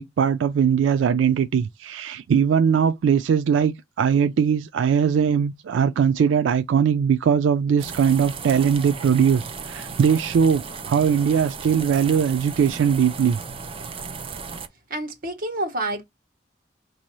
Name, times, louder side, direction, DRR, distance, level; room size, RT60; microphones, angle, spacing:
voice 1, 0.0-13.4, right 7 dB, 80° right, 0.3 m, -20 dB
sound 1, 7.8-14.7, right 5 dB, 30° right, 0.6 m, -35 dB
voice 2, 14.9-16.0, right 1 dB, 50° right, 1.1 m, -28 dB
4.4 x 2.7 x 3.0 m
head